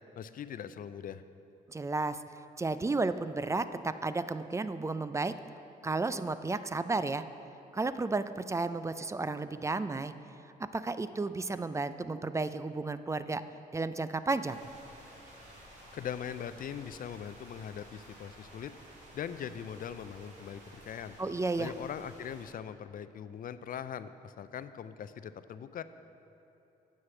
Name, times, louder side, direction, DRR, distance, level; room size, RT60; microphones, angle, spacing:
voice 1, 0.2-1.2 15.9-18.7 19.1-21.2 21.6-25.8, left 8 dB, 55° left, 13 dB, 0.5 m, -41 dB
voice 2, 1.7-2.2 2.6-5.3 5.8-7.2 7.7-10.1 10.7-13.4 13.7-14.6 21.2-21.7, right 3 dB, 15° right, 12 dB, 0.4 m, -32 dB
sound 1, 14.5-22.5, right 1 dB, 90° right, 2.2 m, -53 dB
7.6 x 6.4 x 7.0 m, 2.9 s
supercardioid pair, 65°, 18 cm